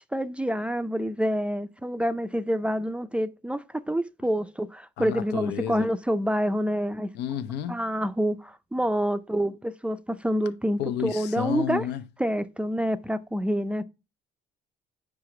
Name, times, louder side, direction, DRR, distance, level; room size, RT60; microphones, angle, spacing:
voice 1, 0.1-7.1 7.7-11.9 12.2-13.8, equal, 5° right, 0.4 m, -27 dB
voice 2, 5.0-5.9 7.1-7.8 10.8-12.0, left 11 dB, 80° left, 0.6 m, -31 dB
5.0 x 4.8 x 5.9 m
cardioid pair, 110°, 17 cm